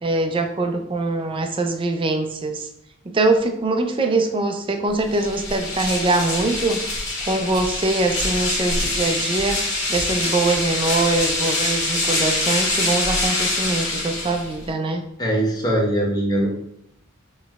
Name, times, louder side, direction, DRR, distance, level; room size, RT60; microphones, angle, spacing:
voice 1, 0.0-2.7 3.1-6.8 7.2-9.6 9.9-15.0, right 2 dB, 25° right, 6 dB, 0.4 m, -23 dB
sound 1, 5.0-14.7, left 2 dB, 75° left, 1.5 m, -24 dB
voice 2, 15.2-16.5, right 1 dB, 20° left, -2 dB, 0.9 m, -21 dB
5.0 x 3.1 x 2.3 m, 0.75 s
head